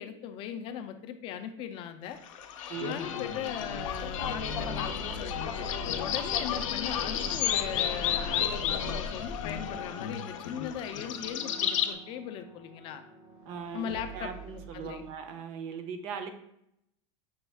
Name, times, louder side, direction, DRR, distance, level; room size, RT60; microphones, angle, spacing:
voice 1, 0.0-2.2 2.8-13.0 13.7-15.1, left 9 dB, 35° left, 8 dB, 0.4 m, -39 dB
sound 1, 2.2-11.9, left 8 dB, 85° left, 0.5 m, -32 dB
voice 2, 2.7-3.0 13.5-16.3, right 6 dB, 40° right, 8 dB, 0.5 m, -39 dB
sound 2, 3.7-8.6 8.9-9.1 10.5-15.1, right 2 dB, 85° right, 1.2 m, -47 dB
6.1 x 2.3 x 3.4 m, 0.78 s
supercardioid pair, 155°, 16 cm